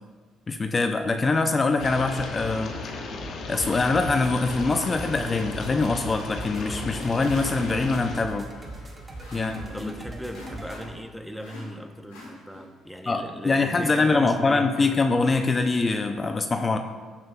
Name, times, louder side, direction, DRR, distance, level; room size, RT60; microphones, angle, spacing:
voice 1, 0.5-2.7 3.5-8.5 9.3-9.5 9.8-9.9 13.1-16.8, left 3 dB, 35° left, 6 dB, 0.6 m, -24 dB
sound 1, 1.8-8.2, left 3 dB, 60° left, 1.3 m, -35 dB
sound 2, 3.5-10.9, right 2 dB, 30° right, 1.6 m, -41 dB
sound 3, 6.3-11.1 11.4-12.9, left 1 dB, 90° left, 3.0 m, -45 dB
voice 2, 9.3-14.9, equal, ahead, 5 dB, 1.0 m, -37 dB
14.0 x 7.5 x 2.4 m, 1.4 s
hypercardioid pair, 55°, 0 cm